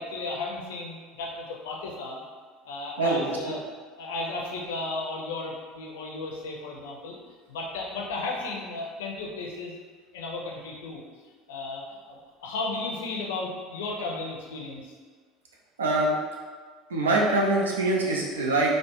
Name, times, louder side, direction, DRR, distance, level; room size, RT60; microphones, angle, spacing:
voice 1, 0.0-2.2 2.6-3.6 4.0-7.2 7.5-9.7 10.1-11.0 11.5-14.9, left 2 dB, 70° left, -2 dB, 0.4 m, -34 dB
voice 2, 15.8-16.2 16.9-18.8, right 2 dB, 80° right, -2 dB, 0.4 m, -23 dB
2.3 x 2.0 x 3.0 m, 1.5 s
figure-of-eight pair, 65°, 0 cm